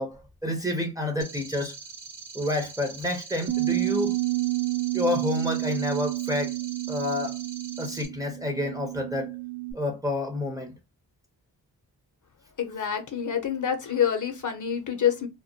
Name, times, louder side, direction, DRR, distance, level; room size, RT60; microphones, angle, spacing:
voice 1, 0.0-1.7 2.3-4.2 4.9-6.5 6.9-7.4 7.8-9.3 9.7-10.7, left 2 dB, 10° right, 0.7 m, -29 dB
sound 1, 1.2-8.1, right 4 dB, 90° right, 0.8 m, -43 dB
Bass guitar, 3.5-9.7, right 22 dB, 50° right, 0.6 m, -30 dB
voice 2, 12.6-15.3, left 8 dB, 50° left, 0.7 m, -27 dB
2.2 x 2.1 x 2.7 m
cardioid pair, 70°, 40 cm